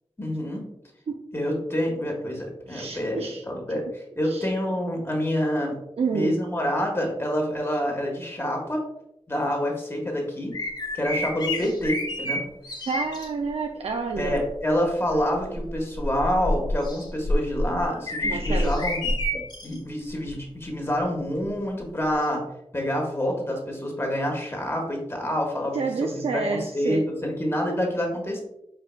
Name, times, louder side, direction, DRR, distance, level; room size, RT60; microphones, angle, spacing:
voice 1, 0.2-0.7 1.3-5.8 6.1-8.8 9.3-10.5 10.9-12.4 14.2-19.1 19.6-22.4 22.7-28.4, equal, 25° left, 0 dB, 1.3 m, -27 dB
voice 2, 2.7-3.4 4.2-4.5 6.0-6.4 12.9-14.5 18.2-18.9 25.7-27.0, right 4 dB, 85° right, 2 dB, 0.4 m, -29 dB
sound 1, 10.5-13.3 14.1-14.5 15.1-19.8 20.3-20.4 22.2-22.3, left 1 dB, 45° left, 0.9 m, -28 dB
4.8 x 4.6 x 2.2 m, 0.82 s
wide cardioid pair, 90°, 10 cm